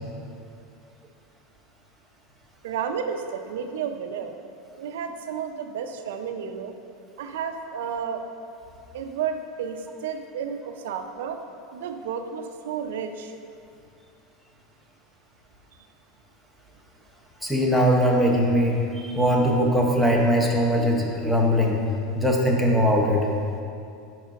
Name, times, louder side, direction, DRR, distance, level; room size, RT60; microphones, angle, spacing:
voice 1, 2.6-4.3 4.8-6.7 7.2-8.2 8.9-11.4 11.7-13.3, right 7 dB, 90° right, 6 dB, 0.4 m, -32 dB
voice 2, 17.4-21.8 22.2-23.3, equal, 5° left, -1 dB, 0.8 m, -21 dB
5.0 x 4.7 x 5.1 m, 2.5 s
supercardioid pair, 140°, 0 cm